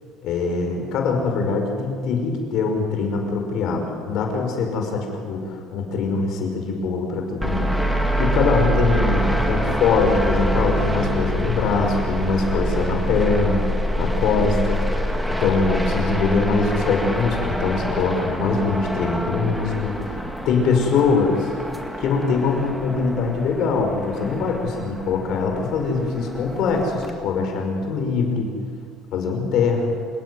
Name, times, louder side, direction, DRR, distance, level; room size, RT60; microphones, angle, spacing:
voice 1, 0.2-21.5 22.0-28.5 29.1-29.9, left 4 dB, 50° left, 3 dB, 5.6 m, -23 dB
sound 1, 7.4-27.1, right 1 dB, 5° right, 2.0 m, -26 dB
28.0 x 16.5 x 9.6 m, 2.1 s
cardioid pair, 175°, 0 cm